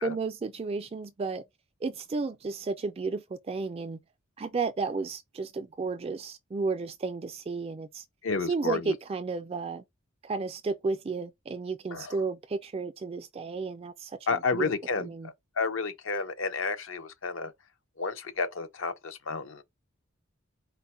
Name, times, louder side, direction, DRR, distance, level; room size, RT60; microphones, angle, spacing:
voice 1, 0.0-1.4 1.8-4.0 4.4-8.0 8.5-9.8 10.2-14.7 15.0-15.3, right 4 dB, 30° right, 0.3 m, -33 dB
voice 2, 8.2-8.9 11.9-12.2 14.3-17.5 18.0-19.6, left 4 dB, 65° left, 0.7 m, -31 dB
4.4 x 2.1 x 4.2 m
head